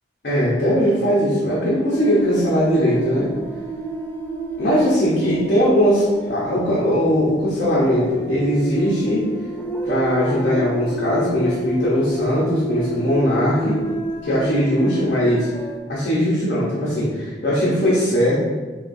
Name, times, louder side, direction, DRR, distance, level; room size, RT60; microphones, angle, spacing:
voice 1, 0.2-3.3 4.6-9.2 9.8-13.8 14.2-15.5 15.9-18.4, equal, 55° left, -8 dB, 0.8 m, -19 dB
sound 1, 1.9-15.8, right 1 dB, 10° left, 0.3 m, -30 dB
5.7 x 2.4 x 2.6 m, 1.4 s
head